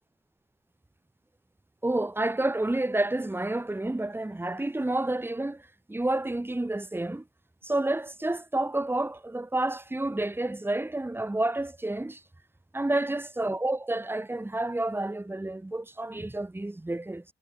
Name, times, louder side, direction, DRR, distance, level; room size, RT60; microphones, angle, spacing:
voice 1, 1.8-5.6 5.9-7.2 7.6-12.2 12.7-17.2, right 2 dB, 10° right, 3.8 m, -29 dB
cardioid pair, 90°, 20 cm